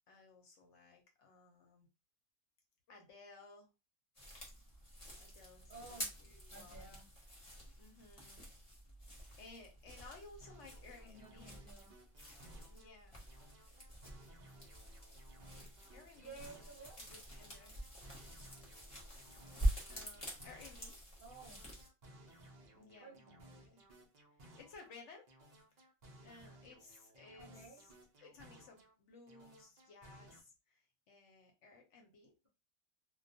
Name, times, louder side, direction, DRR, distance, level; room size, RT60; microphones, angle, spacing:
voice 1, 0.1-1.9 2.9-3.7 5.2-7.0 7.6-8.5 8.8-9.1 9.4-11.6 12.7-13.2 15.8-16.7 17.0-17.8 19.9-21.0 22.7-23.2 23.6-23.8 24.3-25.3 25.7-25.9 26.2-27.9 28.2-32.4, left 3 dB, 65° left, 2 dB, 0.9 m, -58 dB
sound 1, 4.1-21.9, right 1 dB, 30° left, 0.7 m, -45 dB
voice 2, 5.7-6.1 6.5-7.1 11.0-11.9 16.2-17.0 21.2-21.6 23.0-23.4 27.4-27.8, right 3 dB, 45° right, -3 dB, 0.7 m, -54 dB
sound 2, 10.4-12.9 13.3-16.9 17.3-20.9 21.3-24.9 25.3-28.9 29.3-30.4, right 1 dB, 85° right, 0.3 m, -61 dB
2.2 x 2.2 x 2.6 m, 0.28 s
omnidirectional pair, 1.5 m